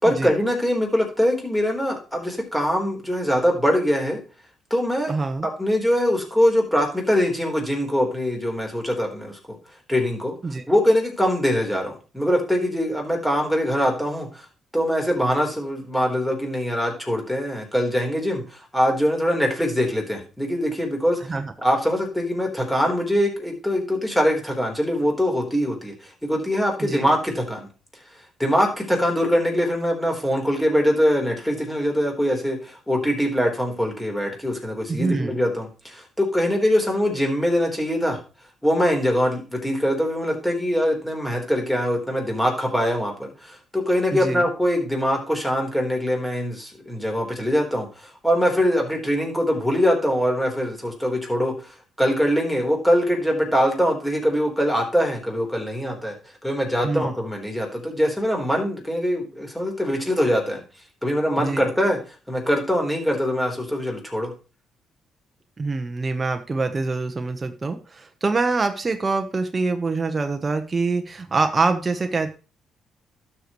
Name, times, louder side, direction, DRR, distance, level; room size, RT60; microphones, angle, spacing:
voice 1, 0.0-4.2 4.7-5.1 5.4-9.6 9.9-10.4 10.7-14.5 14.7-27.7 28.4-38.2 38.6-56.1 56.4-60.6 61.0-62.0 62.3-64.3, equal, 5° left, 1 dB, 3.8 m, -23 dB
voice 2, 5.1-5.5 10.4-10.6 21.3-21.5 26.8-27.1 34.9-35.4 44.1-44.5 56.8-57.1 61.4-61.6 65.6-72.3, right 3 dB, 30° right, 6 dB, 1.0 m, -25 dB
12.0 x 6.8 x 3.1 m, 0.33 s
cardioid pair, 90°, 0 cm